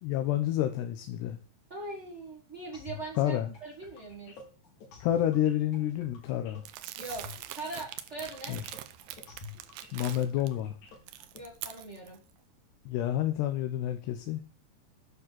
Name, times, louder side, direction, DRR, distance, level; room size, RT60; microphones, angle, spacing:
voice 1, 0.0-1.4 3.2-3.5 5.0-6.6 8.5-8.6 9.9-10.7 12.9-14.4, left 12 dB, 75° left, 7 dB, 2.8 m, -29 dB
voice 2, 1.7-4.3 6.9-7.3 7.5-8.6 11.3-12.2, right 2 dB, 65° right, -1 dB, 0.6 m, -41 dB
sound 1, 2.7-11.4, left 5 dB, 50° left, 3.5 m, -50 dB
Crumpling crinkling, 6.7-10.5 10.9-12.2, right 13 dB, 85° right, 2.2 m, -43 dB
9.4 x 6.3 x 7.6 m, 0.38 s
omnidirectional pair, 5.2 m